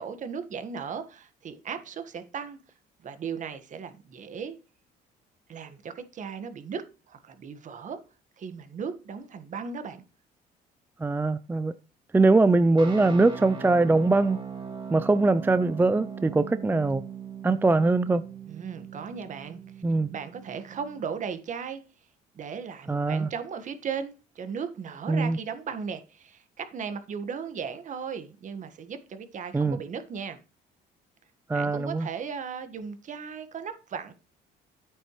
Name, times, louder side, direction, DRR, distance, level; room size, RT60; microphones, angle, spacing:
voice 1, 0.0-2.6 3.0-4.5 5.5-8.0 8.4-10.0 18.5-19.6 20.1-21.8 22.3-30.4 31.5-34.1, right 6 dB, 50° right, 1.6 m, -36 dB
voice 2, 11.0-11.7 12.1-14.4 14.9-17.0 17.4-18.2 19.8-20.1 22.9-23.3 25.1-25.4 29.5-29.8 31.5-32.1, right 3 dB, 10° right, 0.4 m, -22 dB
sound 1, 12.8-21.0, right 6 dB, 30° right, 2.5 m, -40 dB
9.8 x 8.9 x 3.2 m
cardioid pair, 110°, 17 cm